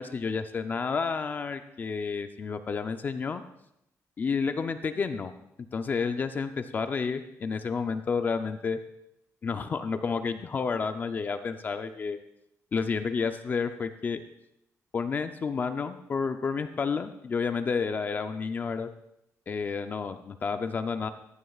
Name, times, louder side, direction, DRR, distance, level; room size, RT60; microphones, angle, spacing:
voice 1, 0.0-3.4 4.2-5.3 5.7-8.8 9.4-12.2 12.7-14.2 14.9-18.9 19.5-21.1, left 5 dB, 35° left, 8 dB, 0.5 m, -30 dB
16.0 x 11.0 x 2.4 m, 0.81 s
cardioid pair, 155°, 6 cm